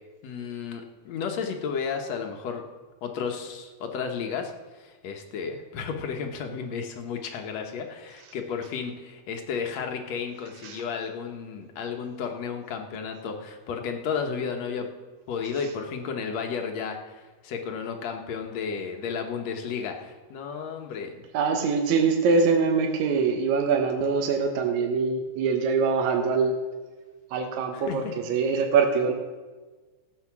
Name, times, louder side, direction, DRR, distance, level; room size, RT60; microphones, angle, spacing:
voice 1, 0.2-2.7 3.0-4.5 4.8-14.9 15.3-21.2 27.7-28.1, left 6 dB, 65° left, 4 dB, 2.2 m, -33 dB
voice 2, 21.3-26.5 27.3-29.1, right 5 dB, 75° right, 3 dB, 2.3 m, -23 dB
15.5 x 8.1 x 6.0 m, 1.3 s
omnidirectional pair, 3.4 m